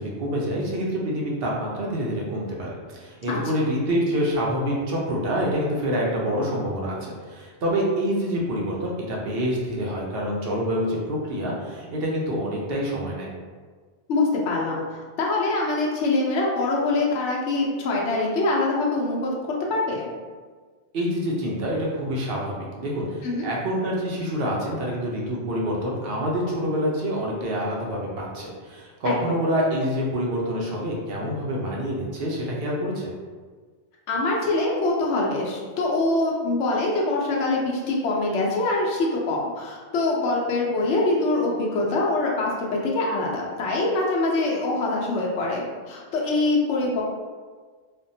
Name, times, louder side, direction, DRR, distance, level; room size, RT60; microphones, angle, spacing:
voice 1, 0.0-13.3 20.9-33.1, equal, 60° right, -3 dB, 0.8 m, -27 dB
voice 2, 14.1-14.8 15.2-19.3 19.7-20.1 23.2-23.5 29.0-29.1 34.1-47.0, left 2 dB, 90° left, -2 dB, 0.9 m, -24 dB
3.4 x 2.2 x 2.6 m, 1.5 s
omnidirectional pair, 1.1 m